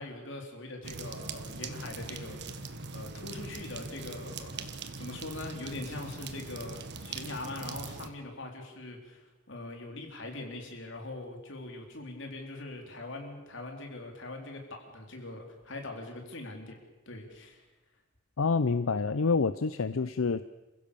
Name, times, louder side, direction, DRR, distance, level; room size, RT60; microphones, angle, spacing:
voice 1, 0.0-4.7 4.9-16.8 17.1-17.6, left 2 dB, 65° left, 2 dB, 4.0 m, -42 dB
sound 1, 0.8-8.1, right 4 dB, 60° right, 1.5 m, -41 dB
voice 2, 18.4-20.4, left 4 dB, 90° left, 13 dB, 0.6 m, -27 dB
28.5 x 15.5 x 7.1 m, 1.2 s
head